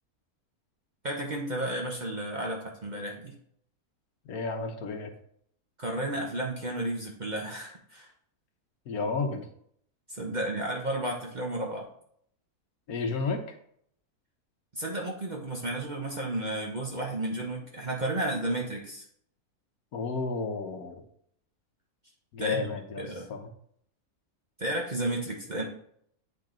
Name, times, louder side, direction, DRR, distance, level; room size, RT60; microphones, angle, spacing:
voice 1, 1.0-3.3 5.8-8.1 10.1-11.9 14.7-19.0 22.4-22.7 23.0-23.3 24.6-25.6, right 1 dB, 35° right, 0 dB, 0.8 m, -32 dB
voice 2, 4.2-5.1 8.9-9.5 12.9-13.6 19.9-20.9 22.3-23.5, left 4 dB, 75° left, 5 dB, 1.4 m, -32 dB
8.7 x 3.8 x 3.8 m, 0.67 s
omnidirectional pair, 1.6 m